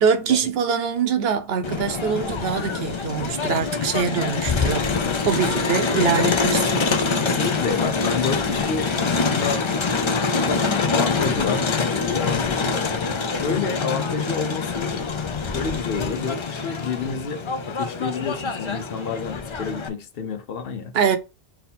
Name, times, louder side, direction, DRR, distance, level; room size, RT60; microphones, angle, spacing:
voice 1, 0.0-4.9 5.2-7.1 20.9-21.2, right 7 dB, 70° right, 0.9 m, -23 dB
Crowd, 1.6-19.9, left 4 dB, 40° left, 0.4 m, -25 dB
voice 2, 7.1-9.6 10.3-12.9 13.3-14.9 15.5-20.9, left 5 dB, 65° left, 0.9 m, -29 dB
3.6 x 2.8 x 4.1 m
omnidirectional pair, 1.1 m